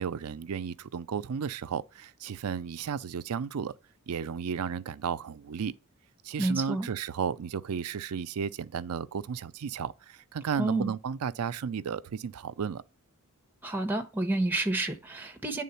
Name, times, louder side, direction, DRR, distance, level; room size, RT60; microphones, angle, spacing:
voice 1, 0.0-3.7 4.1-5.7 6.2-12.8, right 7 dB, 85° right, 0.5 m, -33 dB
voice 2, 6.4-6.9 10.6-10.9 13.6-15.6, right 2 dB, 10° right, 1.0 m, -30 dB
9.3 x 3.8 x 5.5 m
head